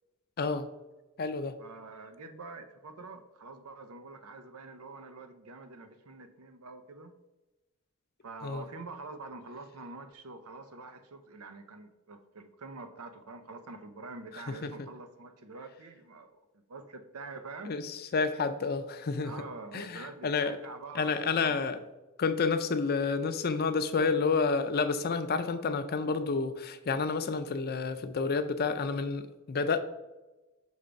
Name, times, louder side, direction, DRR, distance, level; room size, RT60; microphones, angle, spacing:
voice 1, 0.4-0.7 1.2-1.6 8.4-8.6 14.5-14.7 17.7-19.3 19.7-20.6 20.9-21.8 22.2-29.8, left 4 dB, 45° left, 10 dB, 0.5 m, -30 dB
voice 2, 1.6-7.1 8.2-16.4 16.7-17.7 19.2-21.8, right 3 dB, 90° right, 8 dB, 0.7 m, -46 dB
6.4 x 3.4 x 5.1 m, 1.1 s
head